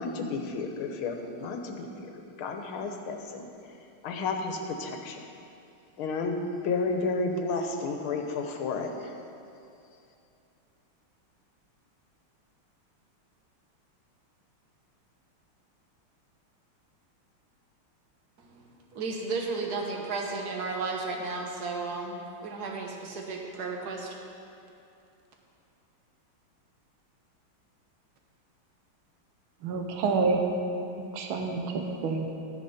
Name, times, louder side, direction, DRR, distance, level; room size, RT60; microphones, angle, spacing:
voice 1, 0.0-2.1 2.4-3.5 4.0-5.2 6.0-6.4 6.6-9.1, left 4 dB, 85° left, 4 dB, 1.9 m, -32 dB
voice 2, 18.9-24.1, right 3 dB, 50° right, 1 dB, 1.6 m, -34 dB
voice 3, 29.6-30.4 31.0-32.3, right 4 dB, 75° right, 3 dB, 1.8 m, -28 dB
13.0 x 9.9 x 4.3 m, 2.6 s
omnidirectional pair, 2.3 m